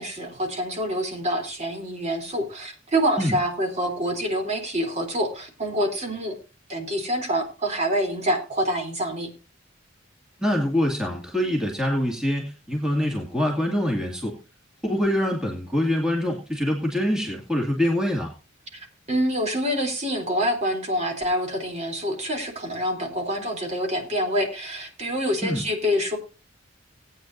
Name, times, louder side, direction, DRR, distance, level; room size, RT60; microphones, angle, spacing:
voice 1, 0.0-6.4 6.7-9.3 18.7-18.8 19.1-26.2, equal, 35° right, 3 dB, 3.4 m, -26 dB
voice 2, 10.4-14.4 14.8-18.3 25.4-25.6, left 1 dB, 5° right, -1 dB, 2.2 m, -24 dB
19.0 x 9.2 x 2.7 m, 0.31 s
head